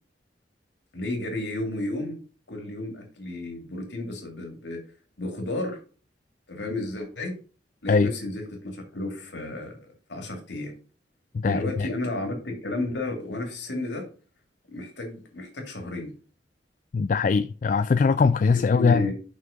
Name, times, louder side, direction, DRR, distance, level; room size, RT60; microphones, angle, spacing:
voice 1, 0.9-2.2 2.5-4.8 5.2-5.8 6.5-7.4 7.8-9.8 10.1-10.7 11.4-14.1 14.7-16.1 18.7-19.1, left 2 dB, 85° left, 2.5 m, -32 dB
voice 2, 11.3-11.9 16.9-19.1, left 4 dB, 45° left, 0.3 m, -21 dB
6.5 x 5.6 x 5.1 m
head